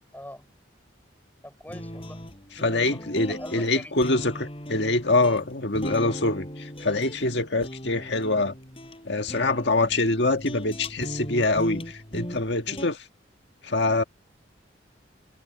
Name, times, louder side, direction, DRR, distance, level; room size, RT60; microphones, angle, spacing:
voice 1, 0.1-0.5 1.4-2.2 2.6-4.0, left 1 dB, 10° left, 5.9 m, -43 dB
sound 1, 1.7-12.9, equal, 30° left, 6.8 m, -38 dB
voice 2, 2.6-8.5 9.0-13.0 13.6-14.0, left 2 dB, 60° left, 1.7 m, -25 dB
head